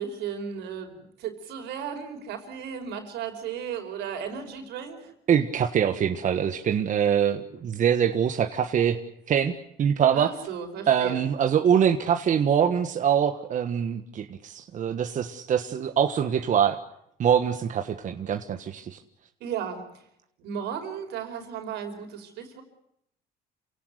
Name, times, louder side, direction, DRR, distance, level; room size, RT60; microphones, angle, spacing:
voice 1, 0.0-5.1 10.1-11.2 19.4-19.9 20.4-22.6, right 7 dB, 85° right, 5 dB, 5.0 m, -35 dB
voice 2, 5.3-9.0 9.3-10.3 10.9-16.8 17.2-19.0, right 8 dB, 50° right, 6 dB, 1.5 m, -24 dB
28.5 x 17.5 x 8.3 m, 0.78 s
cardioid pair, 110°, 17 cm